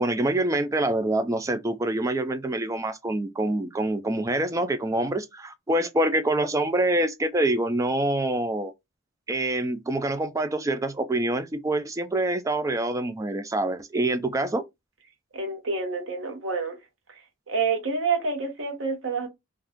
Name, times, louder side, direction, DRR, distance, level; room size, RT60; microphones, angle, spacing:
voice 1, 0.0-8.7 9.3-14.6, right 1 dB, 15° right, 0.3 m, -26 dB
voice 2, 15.3-16.8 17.1-17.2 17.5-19.3, right 4 dB, 80° right, 1.0 m, -28 dB
2.5 x 2.3 x 3.5 m
head